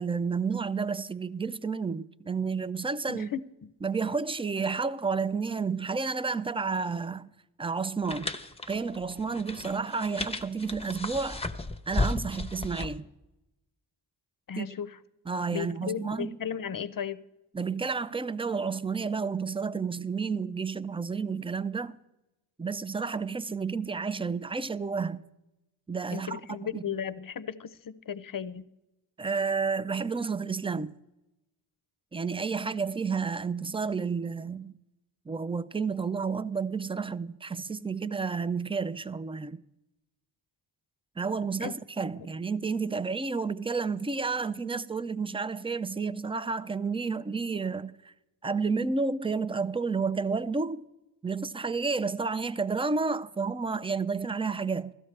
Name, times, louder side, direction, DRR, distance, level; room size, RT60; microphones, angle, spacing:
voice 1, 0.0-3.3 3.8-7.3 7.6-8.4 8.7-11.4 11.9-13.1 14.6-14.7 15.3-16.4 17.5-22.0 22.6-25.2 25.9-26.8 29.2-30.9 32.1-34.8 35.3-39.6 41.2-48.1 48.4-50.9 51.2-54.9, right 5 dB, 15° right, 0.4 m, -31 dB
voice 2, 3.1-3.7 14.5-15.0 15.5-17.2 26.1-28.6 41.6-41.7 42.2-42.3, left 8 dB, 45° left, 0.6 m, -35 dB
sound 1, 8.0-13.0, left 2 dB, 15° left, 0.8 m, -34 dB
16.0 x 13.0 x 3.3 m
cardioid pair, 50°, 47 cm